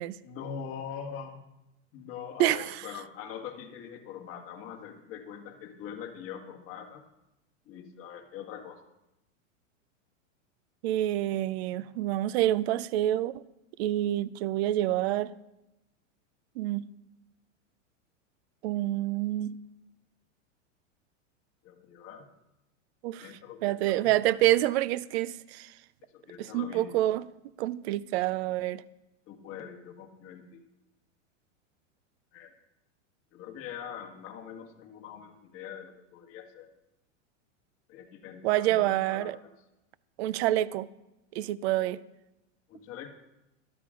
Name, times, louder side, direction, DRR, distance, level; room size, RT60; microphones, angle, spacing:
voice 1, 0.2-1.4 1.9-7.0 7.6-8.8 21.6-22.3 23.2-24.1 26.1-27.0 29.3-30.6 32.3-32.5 33.3-36.7 37.9-39.4 42.7-43.1, left 8 dB, 35° left, 1.7 m, -43 dB
voice 2, 2.4-2.8 10.8-13.4 13.8-15.3 16.6-16.9 18.6-19.6 23.0-23.3 23.6-25.7 26.4-27.3 27.6-28.8 38.4-39.4 40.2-40.9 41.3-42.0, right 14 dB, 55° right, 0.5 m, -27 dB
13.0 x 12.5 x 3.7 m
supercardioid pair, 140°, 38 cm